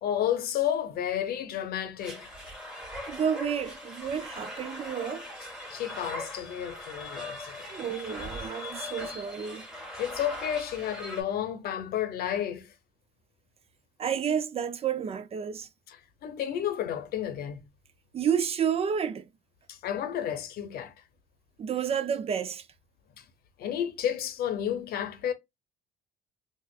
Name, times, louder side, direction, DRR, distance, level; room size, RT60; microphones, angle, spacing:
voice 1, 0.0-2.3 5.7-7.7 10.0-12.7 15.9-17.6 19.7-20.9 23.2-23.3 23.6-25.3, left 10 dB, 65° left, 0.8 m, -31 dB
sound 1, 2.0-11.2, left 1 dB, 5° right, 1.5 m, -40 dB
voice 2, 3.1-5.3 7.7-9.7 14.0-15.7 18.1-19.3 21.6-22.7, right 8 dB, 35° right, 0.4 m, -30 dB
4.3 x 2.4 x 2.3 m
cardioid pair, 110°, 17 cm